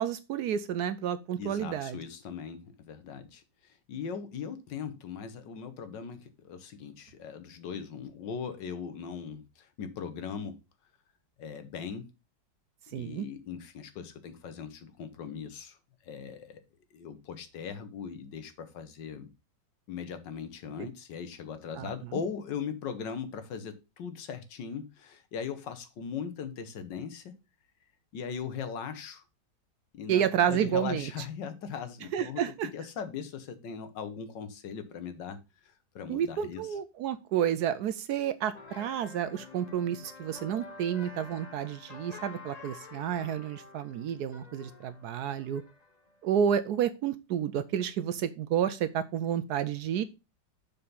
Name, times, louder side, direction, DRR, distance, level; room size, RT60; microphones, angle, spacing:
voice 1, 0.0-2.0 12.9-13.3 21.8-21.9 30.1-31.1 32.1-32.7 36.1-45.6 46.2-50.0, right 9 dB, 70° right, 13 dB, 1.0 m, -30 dB
voice 2, 1.4-10.6 11.4-12.1 12.9-15.8 16.0-16.6 16.9-19.3 19.9-27.3 28.1-29.2 29.9-35.4 35.6-36.7, left 7 dB, 80° left, 10 dB, 1.7 m, -39 dB
sound 1, 38.5-46.2, left 3 dB, 30° left, 0.8 m, -49 dB
6.9 x 4.4 x 5.4 m, 0.26 s
omnidirectional pair, 2.0 m